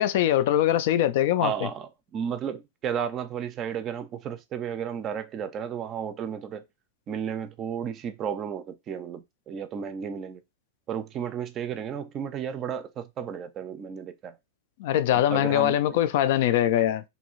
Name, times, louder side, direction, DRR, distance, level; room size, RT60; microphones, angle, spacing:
voice 1, 0.0-1.5 14.8-17.0, left 12 dB, 60° left, 0.3 m, -22 dB
voice 2, 1.4-6.6 7.1-10.4 10.9-14.4 15.3-16.0, right 8 dB, 30° right, 0.4 m, -33 dB
2.7 x 2.4 x 3.0 m
hypercardioid pair, 130°, 0 cm